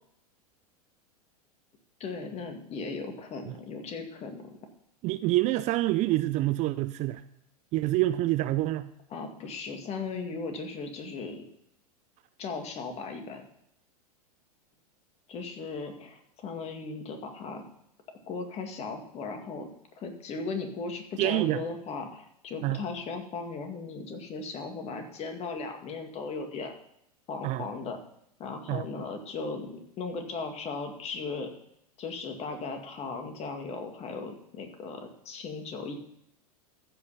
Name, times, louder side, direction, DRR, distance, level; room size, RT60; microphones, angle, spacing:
voice 1, 2.0-4.4 9.1-11.5 12.4-13.4 15.3-17.7 18.3-19.7 20.0-26.7 27.3-28.0 28.4-31.5 32.0-35.9, left 4 dB, 30° left, 4 dB, 2.1 m, -37 dB
voice 2, 5.0-7.2 7.7-8.9 21.2-21.6 22.6-22.8 27.4-27.7 28.7-28.9, right 17 dB, 35° right, 13 dB, 0.5 m, -27 dB
14.5 x 5.6 x 5.6 m, 0.76 s
hypercardioid pair, 95°, 20 cm